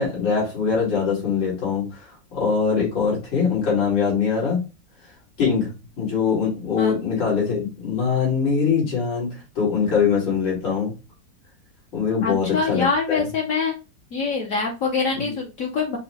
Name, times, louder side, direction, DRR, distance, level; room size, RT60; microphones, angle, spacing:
voice 1, 0.0-4.6 5.4-5.7 6.0-10.9 11.9-13.3, left 6 dB, 80° left, -5 dB, 2.9 m, -22 dB
voice 2, 12.2-13.7 14.1-16.0, left 4 dB, 60° left, 1 dB, 0.9 m, -24 dB
5.4 x 2.2 x 2.9 m, 0.29 s
omnidirectional pair, 2.0 m